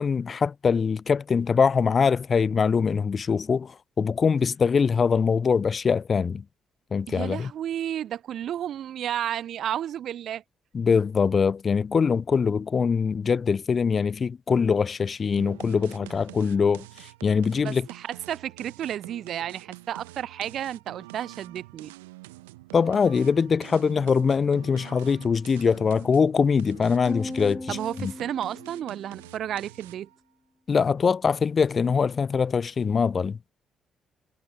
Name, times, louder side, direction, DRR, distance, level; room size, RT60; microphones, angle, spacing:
voice 1, 0.0-6.4 6.9-7.5 10.7-16.8 17.2-17.9 22.7-28.1 30.7-33.4, left 5 dB, 40° left, 0.5 m, -23 dB
voice 2, 7.1-10.4 17.5-21.9 27.7-30.1, right 10 dB, 55° right, 0.5 m, -32 dB
sound 1, 15.4-30.2, right 20 dB, 75° right, 1.1 m, -46 dB
sound 2, 27.1-29.5, left 2 dB, 15° left, 7.9 m, -38 dB
figure-of-eight pair, 40°, 0 cm